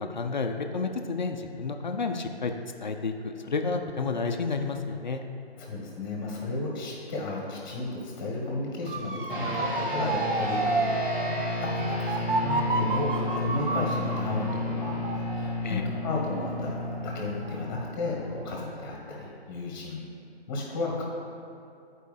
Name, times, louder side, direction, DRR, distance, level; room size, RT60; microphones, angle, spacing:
voice 1, 0.0-2.5 2.8-5.2 15.6-15.8, left 4 dB, 45° left, 5 dB, 0.5 m, -30 dB
voice 2, 5.6-20.0 20.5-21.0, left 2 dB, 20° left, -2 dB, 1.3 m, -34 dB
Motor vehicle (road) / Siren, 8.9-17.8 18.2-18.6, right 3 dB, 55° right, 0.6 m, -31 dB
sound 1, 9.3-19.0, left 2 dB, 5° right, 1.3 m, -32 dB
9.9 x 4.6 x 3.3 m, 2.5 s
figure-of-eight pair, 150°, 33 cm